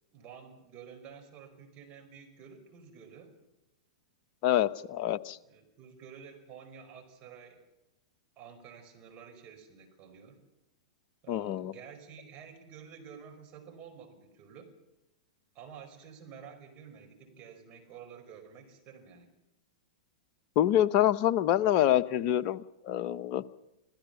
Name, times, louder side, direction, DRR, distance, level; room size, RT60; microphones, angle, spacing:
voice 1, 0.1-3.3 5.5-7.7 8.4-10.5 11.2-14.7 15.5-19.3, right 7 dB, 35° right, 4 dB, 5.0 m, -50 dB
voice 2, 4.4-5.4 11.3-11.7 20.6-23.4, left 12 dB, 40° left, 12 dB, 0.9 m, -26 dB
26.5 x 16.0 x 7.0 m, 0.95 s
figure-of-eight pair, 105°, 4 cm